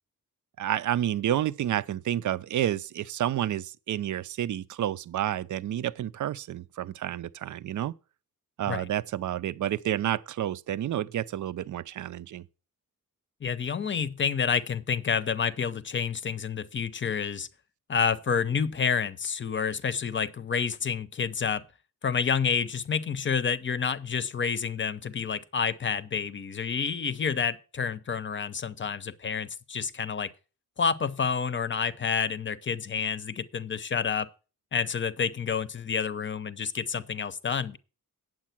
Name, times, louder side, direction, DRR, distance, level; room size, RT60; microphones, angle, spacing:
voice 1, 0.6-7.9 8.6-12.4, right 11 dB, 60° right, 0.5 m, -30 dB
voice 2, 13.4-17.5 17.9-21.6 22.0-30.3 30.8-34.3 34.7-37.8, left 6 dB, 35° left, 0.7 m, -29 dB
9.3 x 7.4 x 5.9 m
wide cardioid pair, 135°, 34 cm